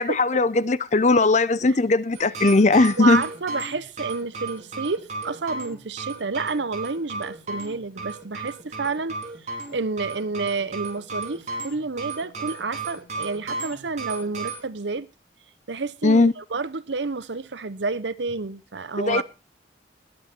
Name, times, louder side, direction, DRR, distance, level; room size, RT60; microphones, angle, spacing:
voice 1, 0.0-3.2 16.0-16.3 19.1-19.2, left 3 dB, 40° left, 0.6 m, -19 dB
sound 1, 2.1-14.6, right 4 dB, 40° right, 4.7 m, -34 dB
voice 2, 3.0-9.2 9.7-15.1 15.7-19.2, right 4 dB, 80° right, 0.9 m, -29 dB
20.5 x 8.2 x 4.4 m
head